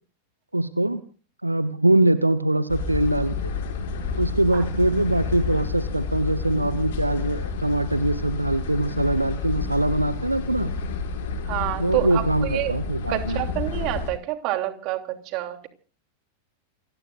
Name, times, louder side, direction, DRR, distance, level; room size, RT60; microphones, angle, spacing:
voice 1, 0.5-1.0 1.4-3.5 4.2-10.7 11.8-13.4, right 1 dB, 85° right, 14 dB, 1.0 m, -23 dB
sound 1, 2.7-14.1, left 4 dB, 55° left, 6.7 m, -30 dB
voice 2, 11.5-12.8 13.1-15.7, right 15 dB, 40° right, 7 dB, 3.0 m, -28 dB
29.0 x 19.5 x 2.6 m, 0.39 s
figure-of-eight pair, 90°, 0 cm